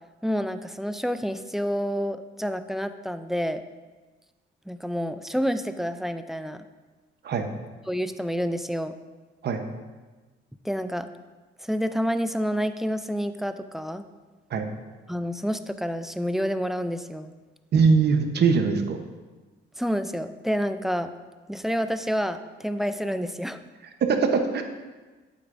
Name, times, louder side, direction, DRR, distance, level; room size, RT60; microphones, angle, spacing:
voice 1, 0.2-3.7 4.7-6.6 7.9-8.9 10.6-11.1 11.6-14.0 15.1-17.3 19.8-21.1 21.5-23.6, equal, ahead, 10 dB, 0.4 m, -28 dB
voice 2, 17.7-19.0 24.0-24.6, right 5 dB, 60° right, 6 dB, 0.9 m, -21 dB
8.5 x 7.9 x 2.6 m, 1.3 s
cardioid pair, 90°, 20 cm